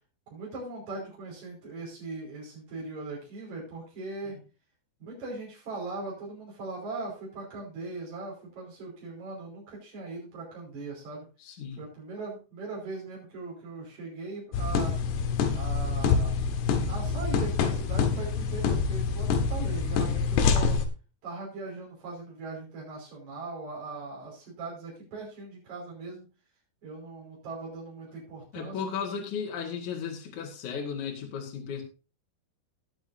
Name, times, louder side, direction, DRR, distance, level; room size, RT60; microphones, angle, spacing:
voice 1, 0.3-4.4 5.0-11.3 11.8-14.9 15.5-16.4 16.9-20.8 21.2-26.3 26.8-28.9, right 3 dB, 45° right, -4 dB, 6.5 m, -40 dB
voice 2, 11.4-11.8 28.5-31.8, left 6 dB, 55° left, 0 dB, 2.9 m, -35 dB
sound 1, 14.5-20.9, left 5 dB, 90° left, 3.4 m, -26 dB
20.0 x 7.2 x 2.7 m, 0.32 s
omnidirectional pair, 4.7 m